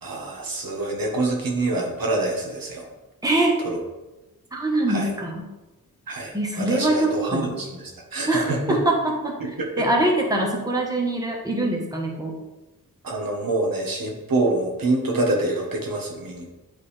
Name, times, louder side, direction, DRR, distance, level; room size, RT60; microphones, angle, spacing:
voice 1, 0.0-2.9 3.6-3.8 4.9-5.1 6.1-8.8 9.4-9.9 13.0-16.5, right 2 dB, 65° right, 0 dB, 1.3 m, -26 dB
voice 2, 3.2-3.6 4.5-5.4 6.3-7.5 8.3-8.4 8.7-9.0 9.2-9.3 9.8-12.3, right 2 dB, 10° right, -1 dB, 1.3 m, -23 dB
8.3 x 3.9 x 3.4 m, 1.1 s
wide cardioid pair, 80°, 37 cm